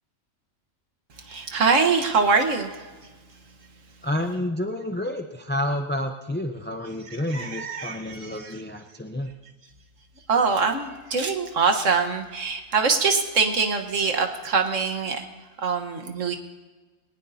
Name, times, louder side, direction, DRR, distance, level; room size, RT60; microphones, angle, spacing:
voice 1, 1.2-2.9 7.0-8.6 10.3-15.3 15.6-16.3, right 5 dB, 70° right, 5 dB, 1.6 m, -24 dB
voice 2, 4.0-9.3, left 1 dB, 15° left, 4 dB, 0.4 m, -29 dB
21.0 x 19.0 x 2.8 m, 1.3 s
omnidirectional pair, 1.4 m